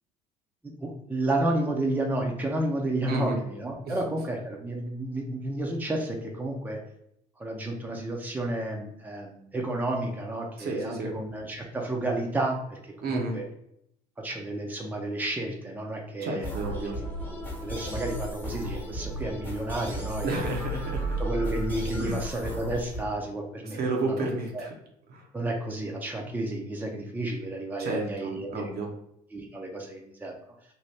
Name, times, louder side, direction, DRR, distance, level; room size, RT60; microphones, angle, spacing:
voice 1, 0.8-6.8 7.4-13.4 14.2-16.6 17.6-20.5 21.2-23.8 24.1-24.3 24.5-24.7 25.3-28.7 29.3-30.3, right 1 dB, 10° right, 0 dB, 0.7 m, -31 dB
voice 2, 3.1-3.4 3.9-4.0 10.6-11.2 13.0-13.4 16.2-16.9 20.2-21.2 22.0-22.2 23.7-24.7 25.1-25.2 27.8-28.9, right 2 dB, 50° right, 1 dB, 0.8 m, -31 dB
sound 1, 16.4-23.0, right 1 dB, 10° left, 1.0 m, -34 dB
2.8 x 2.2 x 3.3 m, 0.75 s
hypercardioid pair, 65°, 20 cm